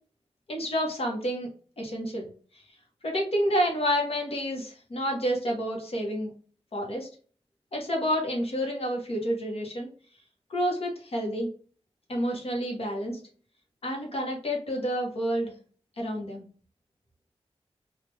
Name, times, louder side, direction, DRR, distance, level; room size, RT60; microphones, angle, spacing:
voice 1, 0.5-1.5 1.8-2.3 3.0-6.3 6.7-7.1 7.7-9.9 10.5-11.5 12.1-13.2 13.8-15.5 16.0-16.5, equal, 65° left, 0 dB, 1.0 m, -29 dB
3.1 x 2.4 x 3.3 m, 0.41 s
wide cardioid pair, 110°, 11 cm